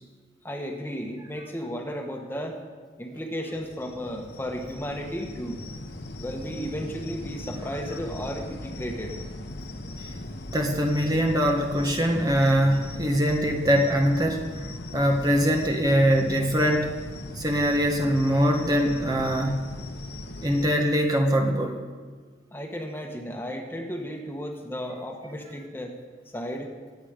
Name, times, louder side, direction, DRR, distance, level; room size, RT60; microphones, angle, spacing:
voice 1, 0.4-2.6 3.0-5.6 6.2-9.1 22.5-26.0 26.3-26.7, equal, 10° left, 2 dB, 1.5 m, -34 dB
sound 1, 3.5-20.7, left 1 dB, 65° left, 1.2 m, -39 dB
voice 2, 10.5-14.4 14.9-16.9 17.3-19.6 20.4-21.8, equal, 20° right, 2 dB, 1.3 m, -22 dB
23.5 x 9.0 x 5.2 m, 1.5 s
head